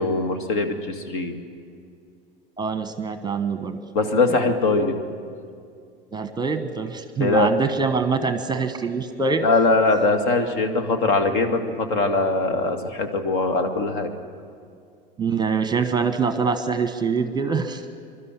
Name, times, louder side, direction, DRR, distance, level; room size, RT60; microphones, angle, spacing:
voice 1, 0.0-1.3 3.9-4.9 7.2-7.5 9.4-14.1, left 3 dB, 55° left, 7 dB, 2.1 m, -21 dB
voice 2, 2.6-3.8 6.1-9.4 15.2-17.8, right 5 dB, 15° right, 9 dB, 1.2 m, -24 dB
26.5 x 12.5 x 9.9 m, 2.3 s
figure-of-eight pair, 85°, 29 cm